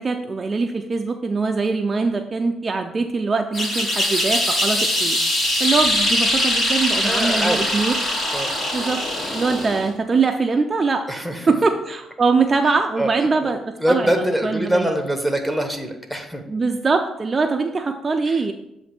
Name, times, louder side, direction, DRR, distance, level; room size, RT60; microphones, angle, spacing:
voice 1, 0.0-5.2 5.6-8.0 8.7-9.1 9.3-11.1 11.5-14.9 16.5-18.5, right 4 dB, 30° right, 4 dB, 0.4 m, -22 dB
sound 1, 3.5-9.9, left 1 dB, 50° left, 2.0 m, -22 dB
voice 2, 7.0-7.7 8.3-8.5 11.1-11.5 13.0-13.5 13.8-16.5 18.3-18.4, equal, 5° left, 3 dB, 1.1 m, -24 dB
7.5 x 2.6 x 5.8 m, 0.85 s
cardioid pair, 90°, 0 cm